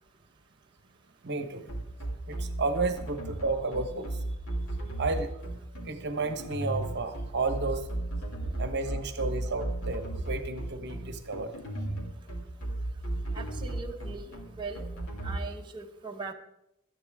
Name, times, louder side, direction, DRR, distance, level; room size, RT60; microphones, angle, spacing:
voice 1, 1.2-1.7 2.3-4.2 5.0-5.3 5.8-7.9 8.6-11.5, right 3 dB, 50° right, 8 dB, 1.2 m, -32 dB
sound 1, 1.7-15.4, right 1 dB, 65° left, 2.7 m, -34 dB
voice 2, 13.3-14.9 15.2-16.3, right 3 dB, 20° right, 0 dB, 1.2 m, -40 dB
17.5 x 12.5 x 3.7 m, 0.83 s
head